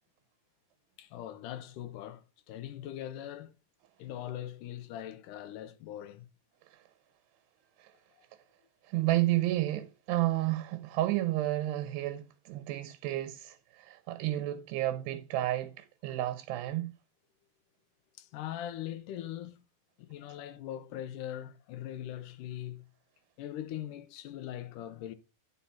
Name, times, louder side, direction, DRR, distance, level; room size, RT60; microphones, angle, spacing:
voice 1, 1.0-3.5 4.0-6.3 18.2-19.6 20.0-22.8 23.4-25.1, left 12 dB, 85° left, 1.8 m, -41 dB
voice 2, 8.8-16.9, right 15 dB, 85° right, 2.9 m, -31 dB
9.8 x 5.0 x 5.7 m
omnidirectional pair, 4.8 m